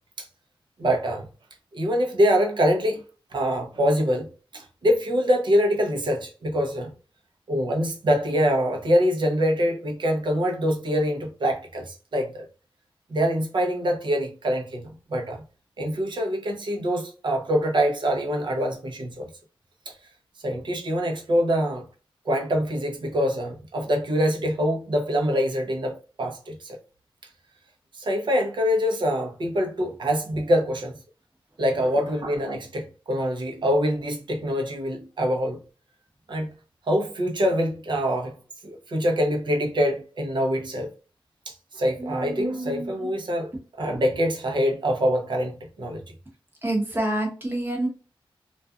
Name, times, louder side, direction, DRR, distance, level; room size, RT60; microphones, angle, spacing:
voice 1, 0.8-1.3 1.7-3.0 3.3-4.3 4.5-6.9 7.5-12.4 13.1-15.4 15.8-19.3 19.9-20.0 20.4-21.8 22.2-26.8 28.0-31.0 31.6-35.6 36.3-36.5 36.9-38.3 38.6-40.9 41.5-43.5 43.8-46.0, equal, 55° right, 0.7 m, -24 dB
voice 2, 42.0-42.7 46.6-47.9, right 1 dB, 25° right, 1.0 m, -27 dB
2.4 x 2.3 x 2.4 m
wide cardioid pair, 95°, 9 cm